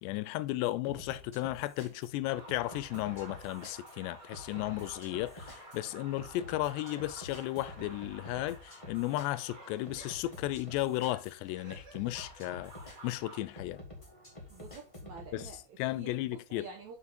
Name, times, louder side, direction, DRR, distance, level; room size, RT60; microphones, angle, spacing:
voice 1, 0.0-12.7 13.0-13.8 15.3-15.5 15.8-16.7, left 16 dB, 85° left, 2.7 m, -34 dB
sound 1, 0.9-15.6, left 2 dB, 15° left, 1.0 m, -50 dB
sound 2, 2.2-13.4, right 1 dB, 35° right, 3.0 m, -52 dB
voice 2, 14.5-17.0, right 5 dB, 75° right, 1.7 m, -49 dB
7.0 x 6.5 x 4.2 m
omnidirectional pair, 5.0 m